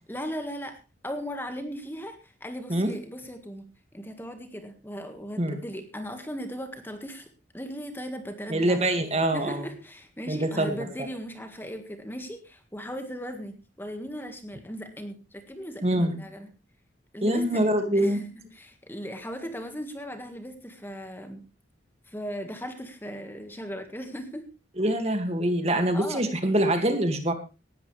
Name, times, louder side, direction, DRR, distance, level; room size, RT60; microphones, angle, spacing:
voice 1, 0.1-7.3 7.5-8.8 9.3-16.5 17.1-17.6 17.9-18.3 18.5-21.4 22.1-24.5 25.9-26.2, equal, 10° left, 6 dB, 1.7 m, -38 dB
voice 2, 8.5-9.6 10.3-10.8 15.8-16.1 17.2-18.2 24.8-27.3, right 1 dB, 35° right, 7 dB, 2.2 m, -24 dB
18.5 x 13.0 x 3.3 m, 0.30 s
head